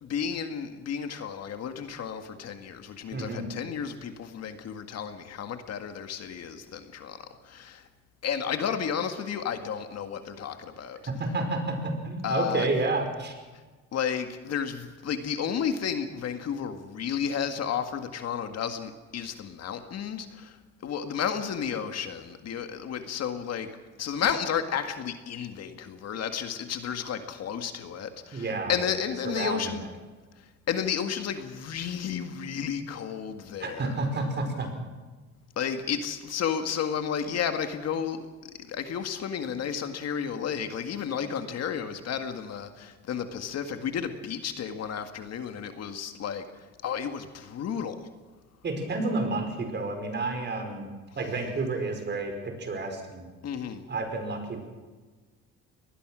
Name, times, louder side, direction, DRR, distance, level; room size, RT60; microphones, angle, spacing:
voice 1, 0.0-7.9 8.2-11.0 12.2-12.7 13.9-23.7 24.0-29.8 30.4-33.9 35.6-38.3 38.7-48.1 53.4-53.9, left 7 dB, 60° left, 7 dB, 1.9 m, -32 dB
voice 2, 3.1-3.5 11.2-13.4 28.3-28.8 29.2-29.7 33.6-34.7 48.6-50.9 51.2-53.3 53.9-54.6, right 3 dB, 35° right, 5 dB, 5.2 m, -30 dB
23.5 x 19.5 x 6.3 m, 1.3 s
cardioid pair, 115°, 30 cm